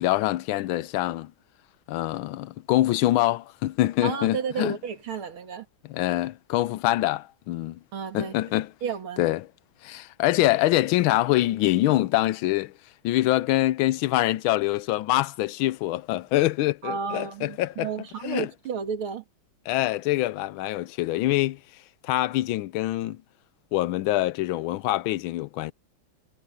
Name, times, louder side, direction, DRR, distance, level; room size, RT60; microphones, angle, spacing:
voice 1, 0.0-1.3 1.9-4.8 5.9-7.8 8.1-8.7 9.2-9.5 9.8-12.7 13.0-17.9 18.2-18.5 19.7-21.6 22.0-23.2 23.7-25.7, left 16 dB, 80° left, 1.4 m, -24 dB
voice 2, 4.0-5.7 7.9-8.3 8.8-9.2 16.8-19.2, right 6 dB, 90° right, 2.8 m, -32 dB
omnidirectional pair, 2.2 m